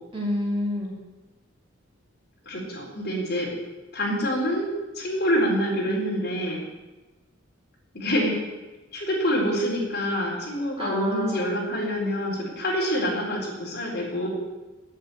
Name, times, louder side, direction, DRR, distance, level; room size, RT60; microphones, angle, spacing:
voice 1, 0.1-0.9 10.8-11.4, left 1 dB, 25° right, -4 dB, 3.2 m, -28 dB
voice 2, 2.5-3.5 3.9-6.6 7.9-8.4 8.9-14.3, equal, 50° left, -3 dB, 3.9 m, -26 dB
9.5 x 8.4 x 8.3 m, 1.1 s
head